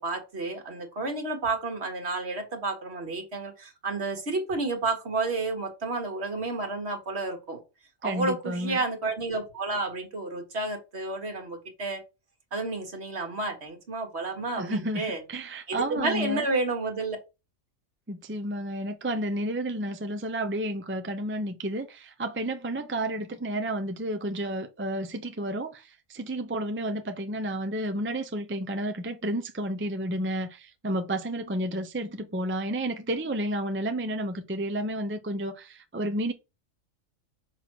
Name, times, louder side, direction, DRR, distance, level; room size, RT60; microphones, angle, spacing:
voice 1, 0.0-7.6 8.0-12.0 12.5-15.2 15.7-17.2, right 3 dB, 55° right, 1.8 m, -31 dB
voice 2, 8.0-8.8 14.6-16.5 18.1-36.3, right 1 dB, 15° right, 0.4 m, -31 dB
6.0 x 3.6 x 6.0 m
omnidirectional pair, 1.3 m